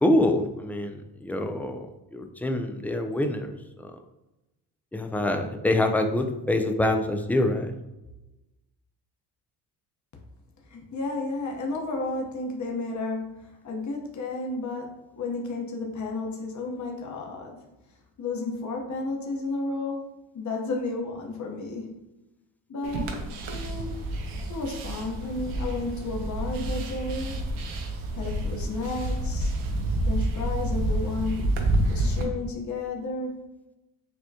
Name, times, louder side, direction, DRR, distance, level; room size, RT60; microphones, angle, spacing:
voice 1, 0.0-3.9 4.9-7.8, left 1 dB, 5° left, 6 dB, 0.3 m, -26 dB
voice 2, 10.7-17.6 18.2-21.9 22.7-23.2 23.4-24.1 24.5-27.4 28.1-29.5 30.1-31.5 31.9-33.5, left 3 dB, 35° left, 1 dB, 1.0 m, -32 dB
sound 1, 22.8-32.2, right 1 dB, 80° right, 0.8 m, -29 dB
6.2 x 2.1 x 2.8 m, 0.99 s
supercardioid pair, 65°, 48 cm